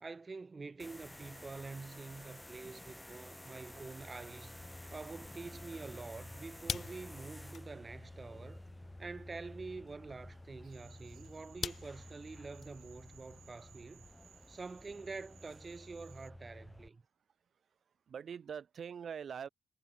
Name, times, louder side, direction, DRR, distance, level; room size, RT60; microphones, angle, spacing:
voice 1, 0.0-4.6 4.9-8.6 9.0-14.1 14.5-17.0, right 4 dB, 30° right, 0.7 m, -47 dB
sound 1, 0.8-16.9, left 1 dB, 5° left, 1.3 m, -52 dB
sound 2, 3.7-14.2, left 6 dB, 45° left, 3.6 m, -49 dB
Cricket / Frog, 10.7-16.3, right 10 dB, 70° right, 2.9 m, -63 dB
voice 2, 18.1-19.5, right 7 dB, 50° right, 3.6 m, -44 dB
cardioid pair, 90°, 0 cm